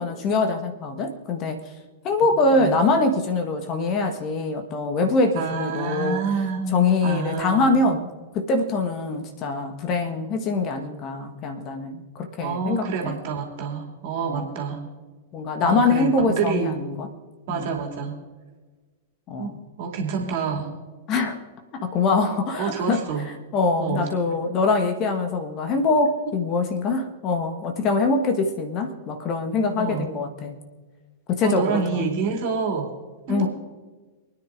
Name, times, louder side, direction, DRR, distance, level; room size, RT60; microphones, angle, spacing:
voice 1, 0.0-1.7 2.0-6.2 6.7-8.1 8.3-13.2 14.2-14.6 15.3-17.1 17.5-17.7 19.3-19.6 21.1-21.4 21.7-23.0 23.5-30.6 31.3-32.1 33.3-33.5, left 3 dB, 35° left, 6 dB, 1.3 m, -23 dB
voice 2, 5.4-7.9 12.4-14.9 15.6-16.8 17.5-18.2 19.4-20.7 22.6-23.3 23.8-24.1 29.8-30.1 31.4-32.9 33.3-33.5, right 5 dB, 45° right, 0 dB, 2.6 m, -28 dB
27.5 x 10.0 x 2.6 m, 1.3 s
figure-of-eight pair, 95°, 0 cm